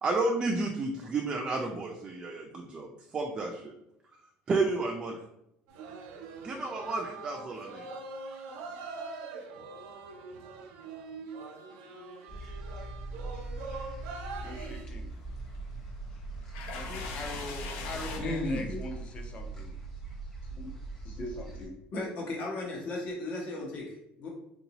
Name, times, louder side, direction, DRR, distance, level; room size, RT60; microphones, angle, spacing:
voice 1, 0.0-2.9 3.1-3.7 4.5-5.2 6.4-7.9, right 3 dB, 25° right, 1 dB, 0.4 m, -31 dB
sound 1, 5.7-14.9, right 3 dB, 85° right, 0.5 m, -43 dB
sound 2, 12.3-21.7, right 3 dB, 10° left, 1.0 m, -41 dB
voice 2, 14.4-15.1 16.7-19.8, left 2 dB, 30° left, 3 dB, 0.6 m, -42 dB
sound 3, 15.1-18.2, left 5 dB, 80° left, 0.6 m, -41 dB
voice 3, 18.2-18.8 20.5-20.7 21.0-24.3, left 2 dB, 45° left, -2 dB, 1.0 m, -36 dB
3.8 x 2.6 x 2.9 m, 0.81 s
cardioid pair, 150°, 3 cm